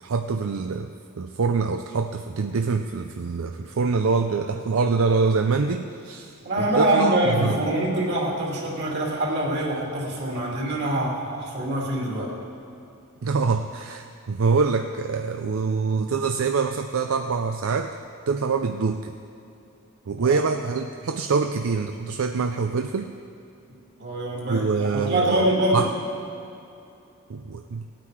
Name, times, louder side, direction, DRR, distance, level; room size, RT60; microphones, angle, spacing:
voice 1, 0.0-7.6 13.2-18.0 18.3-19.1 20.1-23.1 24.5-25.9 27.3-27.9, right 4 dB, 75° right, 6 dB, 0.5 m, -25 dB
voice 2, 6.4-12.3 20.2-20.4 24.0-25.9, right 1 dB, 50° right, -3 dB, 2.7 m, -24 dB
18.0 x 9.0 x 4.9 m, 2.7 s
head